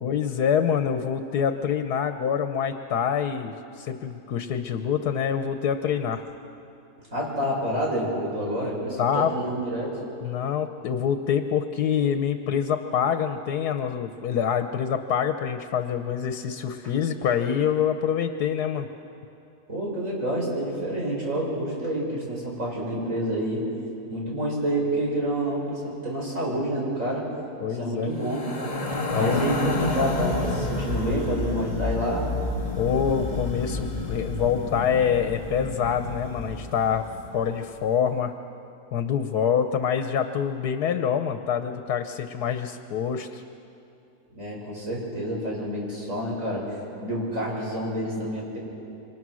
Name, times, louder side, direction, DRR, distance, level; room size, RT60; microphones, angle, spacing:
voice 1, 0.0-6.2 9.0-9.3 10.2-18.9 27.6-28.1 29.1-29.4 32.8-37.0 37.3-38.3 38.9-43.4, left 8 dB, 90° left, 8 dB, 1.5 m, -26 dB
voice 2, 7.1-10.0 19.7-23.6 24.1-27.3 27.8-28.5 29.1-32.7 44.3-48.6, right 1 dB, 55° right, -3 dB, 6.2 m, -28 dB
sound 1, 28.2-37.5, left 2 dB, 25° left, 1.9 m, -30 dB
28.0 x 24.5 x 6.3 m, 2.7 s
omnidirectional pair, 1.6 m